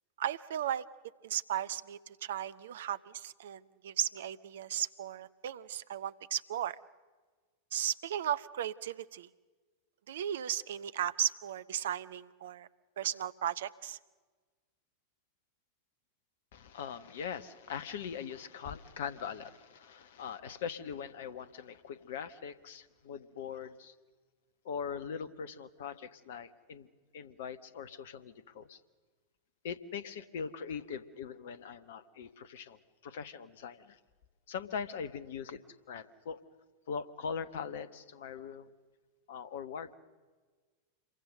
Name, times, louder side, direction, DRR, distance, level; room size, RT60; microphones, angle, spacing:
voice 1, 0.2-0.8 1.2-6.8 7.7-9.3 10.1-12.7 13.0-14.0, right 10 dB, 60° right, 15 dB, 0.7 m, -35 dB
voice 2, 16.5-23.9 24.6-26.9 27.1-28.8 29.6-34.0 34.5-35.6 35.9-36.4 36.9-38.7 39.3-40.0, left 6 dB, 55° left, 15 dB, 1.2 m, -41 dB
27.0 x 23.0 x 6.6 m, 1.4 s
figure-of-eight pair, 90°, 0 cm